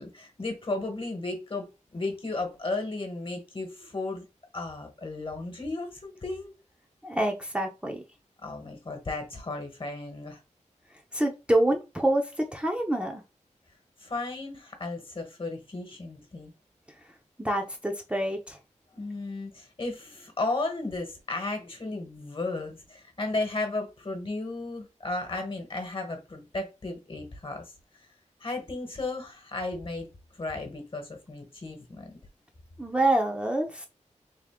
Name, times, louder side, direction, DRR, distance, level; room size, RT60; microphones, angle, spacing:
voice 1, 0.0-1.7 1.9-4.2 4.5-6.5 8.4-10.4 14.0-16.5 19.0-27.6 28.4-30.1 30.3-32.1, left 2 dB, 45° left, 1.1 m, -34 dB
voice 2, 7.0-8.0 11.1-13.2 17.4-18.6 32.8-33.9, right 1 dB, 10° right, 0.6 m, -26 dB
3.5 x 2.5 x 3.6 m
wide cardioid pair, 105°, 13 cm